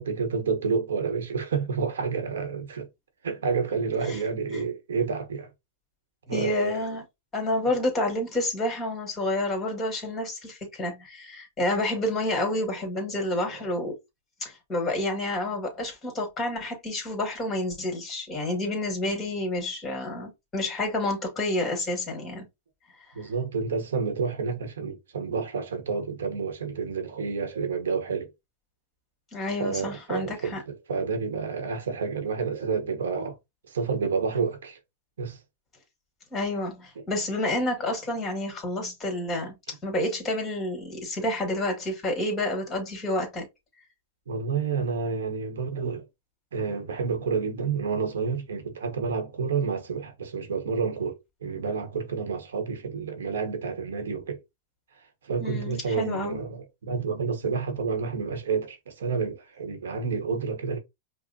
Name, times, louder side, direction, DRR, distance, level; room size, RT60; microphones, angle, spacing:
voice 1, 0.0-2.9 3.2-5.5 6.3-6.8 13.4-13.5 23.1-28.3 29.6-33.4 33.7-34.8 35.2-35.4 37.0-37.1 44.3-46.0 46.5-54.4 55.2-60.8, right 5 dB, 85° right, 1.0 m, -29 dB
voice 2, 6.3-7.0 7.3-14.0 14.4-22.5 29.3-30.6 36.3-39.6 39.8-43.5 55.4-56.4, left 1 dB, 20° left, 1.9 m, -29 dB
5.2 x 2.1 x 2.7 m
hypercardioid pair, 125°, 0 cm